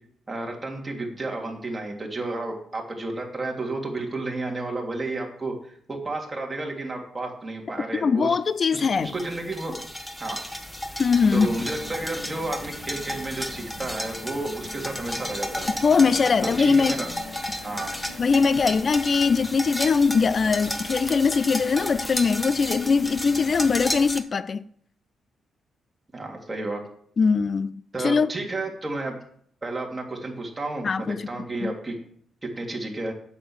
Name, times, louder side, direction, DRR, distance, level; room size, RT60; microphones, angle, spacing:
voice 1, 0.3-8.4 8.7-9.7 10.2-10.4 11.3-15.7 16.6-17.1 17.6-17.9 26.1-26.8 27.9-29.1 29.6-31.9 32.4-33.1, right 2 dB, 25° right, 3.0 m, -32 dB
voice 2, 8.0-9.1 11.0-11.5 15.8-17.0 18.2-24.6 27.2-28.3 30.8-31.3 31.6-31.7, left 5 dB, 45° left, 0.4 m, -21 dB
sound 1, 8.6-24.2, left 1 dB, 5° left, 1.3 m, -33 dB
sound 2, 11.1-24.0, left 2 dB, 75° left, 4.0 m, -43 dB
8.4 x 7.4 x 7.3 m
cardioid pair, 90°, 0 cm